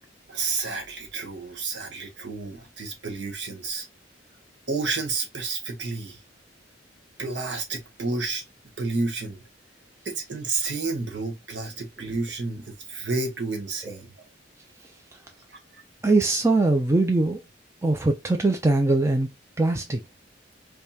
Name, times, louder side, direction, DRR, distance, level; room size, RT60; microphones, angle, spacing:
voice 1, 0.3-3.9 4.7-6.2 7.2-8.4 8.8-9.4 10.0-14.1 15.5-15.6, right 3 dB, 65° right, 1.3 m, -30 dB
voice 2, 16.0-17.4 17.8-19.3 19.6-20.0, right 2 dB, 15° right, 0.5 m, -21 dB
5.2 x 2.3 x 2.8 m
head